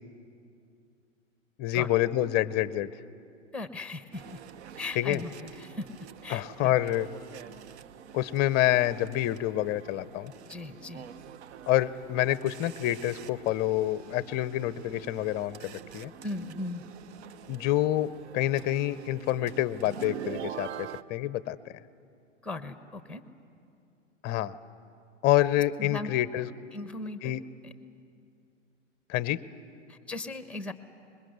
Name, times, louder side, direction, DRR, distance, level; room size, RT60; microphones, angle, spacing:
voice 1, 1.6-2.9 4.9-5.2 6.3-7.1 8.1-10.3 11.7-16.1 17.5-21.6 24.2-24.6 25.2-26.5 27.2-27.4 29.1-29.4, left 14 dB, 25° left, 16 dB, 0.6 m, -27 dB
voice 2, 3.5-4.4 4.8-5.9 6.2-6.7 10.5-11.1 16.2-16.8 22.4-23.2 25.8-26.1 26.7-27.3 27.6-27.7 29.9-30.7, left 2 dB, 5° left, 10 dB, 1.0 m, -38 dB
sound 1, 4.1-21.0, right 9 dB, 60° right, 0.7 m, -45 dB
25.0 x 21.5 x 8.1 m, 2.6 s
hypercardioid pair, 115°, 38 cm